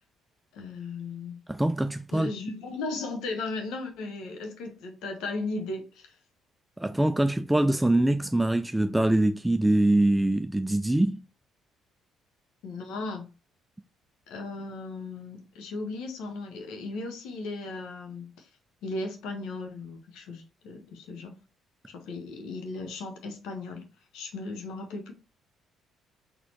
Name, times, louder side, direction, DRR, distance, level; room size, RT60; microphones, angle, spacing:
voice 1, 0.5-1.4 2.1-6.2 12.6-13.3 14.3-18.5 18.8-21.4 21.9-23.8 24.1-25.1, left 3 dB, 65° left, 1.0 m, -36 dB
voice 2, 1.5-2.3 6.8-11.2, right 1 dB, 10° right, 0.3 m, -24 dB
4.1 x 3.6 x 2.8 m
figure-of-eight pair, 45°, 0 cm